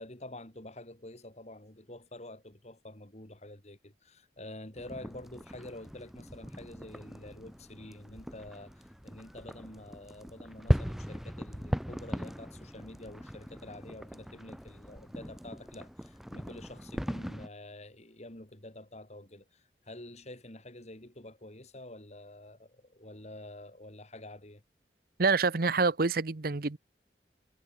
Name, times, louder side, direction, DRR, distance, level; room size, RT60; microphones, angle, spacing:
voice 1, 0.0-24.6, left 1 dB, 40° left, 3.4 m, -48 dB
sound 1, 4.8-17.5, equal, ahead, 3.1 m, -38 dB
voice 2, 25.2-26.8, right 4 dB, 55° right, 0.9 m, -27 dB
head